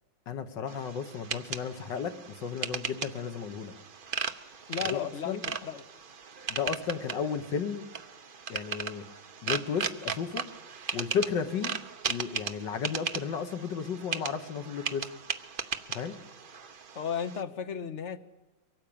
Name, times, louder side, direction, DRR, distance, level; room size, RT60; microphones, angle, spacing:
voice 1, 0.3-3.7 4.9-5.4 6.5-7.8 8.5-9.0 9.4-10.5 10.9-11.8 12.1-15.1 15.9-16.1, left 6 dB, 70° left, 8 dB, 1.9 m, -33 dB
sound 1, 0.7-17.4, right 6 dB, 45° right, 0.7 m, -37 dB
voice 2, 4.7-5.8 16.9-18.2, left 7 dB, 45° left, 9 dB, 1.3 m, -35 dB
24.0 x 17.5 x 8.7 m, 1.0 s
omnidirectional pair, 2.0 m